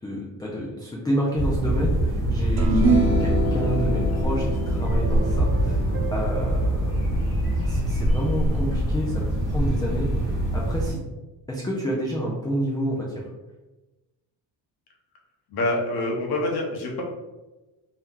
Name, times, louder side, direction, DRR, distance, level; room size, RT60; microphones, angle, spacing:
voice 1, 0.0-7.1 7.7-9.2 9.5-11.0 11.5-13.3, equal, 10° left, -4 dB, 0.3 m, -29 dB
sound 1, 1.4-10.9, right 1 dB, 25° right, 1.3 m, -24 dB
sound 2, 2.6-9.1, right 2 dB, 75° right, 0.9 m, -28 dB
Keyboard (musical), 3.0-10.5, right 3 dB, 40° right, 0.8 m, -42 dB
voice 2, 15.5-17.0, left 2 dB, 55° left, -1 dB, 1.0 m, -26 dB
2.8 x 2.2 x 3.6 m, 1.1 s
cardioid pair, 125°, 46 cm